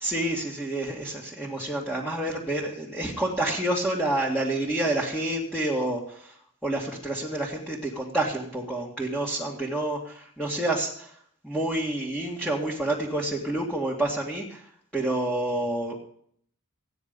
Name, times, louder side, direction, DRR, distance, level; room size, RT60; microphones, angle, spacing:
voice 1, 0.0-6.3 6.6-11.1 11.4-14.6 14.9-15.9, right 1 dB, 5° left, -5 dB, 1.9 m, -28 dB
15.5 x 9.6 x 5.3 m, 0.64 s
head